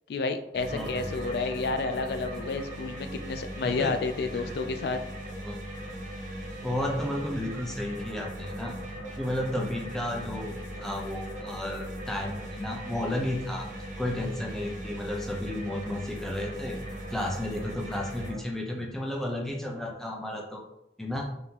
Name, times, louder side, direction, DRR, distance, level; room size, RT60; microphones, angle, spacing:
voice 1, 0.1-5.0, left 3 dB, 65° left, 7 dB, 0.3 m, -30 dB
sound 1, 0.5-18.4, right 1 dB, 45° right, 1.2 m, -39 dB
voice 2, 0.7-1.1 3.6-3.9 4.3-4.5 5.2-5.6 6.6-8.7 9.1-13.7 14.0-16.8 17.1-20.6 21.0-21.3, left 1 dB, ahead, 0 dB, 0.6 m, -33 dB
3.9 x 3.6 x 2.9 m, 0.83 s
head